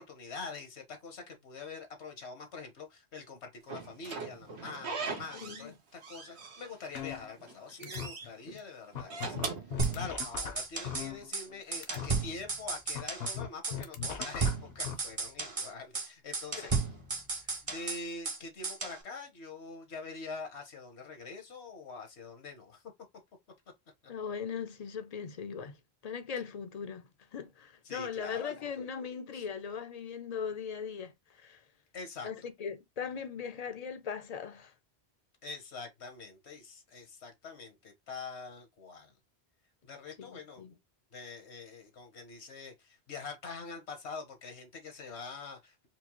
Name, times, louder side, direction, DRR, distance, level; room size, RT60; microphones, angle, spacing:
voice 1, 0.0-16.7 17.6-22.8 27.8-28.7 29.3-29.4 31.9-32.3 35.4-39.1 39.8-40.8 41.1-45.9, left 4 dB, 85° left, 1.4 m, -45 dB
Slam / Squeak, 3.7-5.7 6.0-7.0 7.4-8.3 8.9-10.5, right 4 dB, 80° right, 1.2 m, -40 dB
voice 2, 5.3-5.8 7.8-7.9 8.5-8.6 16.5-16.8 24.1-25.8 26.0-31.6 32.2-34.7 40.2-40.8, left 6 dB, 45° left, 0.5 m, -39 dB
sound 1, 7.0-7.6 7.8-8.1 8.6-8.7 9.0-11.6 11.8-12.1 13.0-14.9, left 8 dB, 65° left, 0.9 m, -39 dB
sound 2, 9.8-11.1 11.3-11.5 11.7-13.4 13.6-13.8 14.0-15.7 15.9-16.1 16.3-18.4 18.6-19.0, right 4 dB, 35° right, 0.8 m, -34 dB
4.5 x 2.0 x 3.0 m
omnidirectional pair, 1.1 m